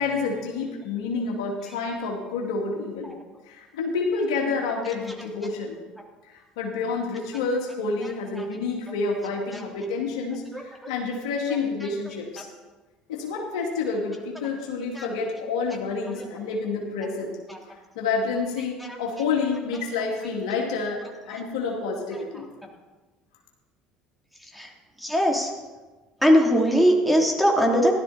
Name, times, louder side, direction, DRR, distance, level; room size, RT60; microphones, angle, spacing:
voice 1, 0.0-3.1 3.5-5.8 6.6-12.5 13.1-17.3 18.0-22.5, left 4 dB, 80° left, 0 dB, 2.5 m, -28 dB
voice 2, 25.0-25.5 26.2-27.9, equal, ahead, 0 dB, 3.2 m, -21 dB
15.5 x 12.5 x 4.3 m, 1.3 s
hypercardioid pair, 70°, 3 cm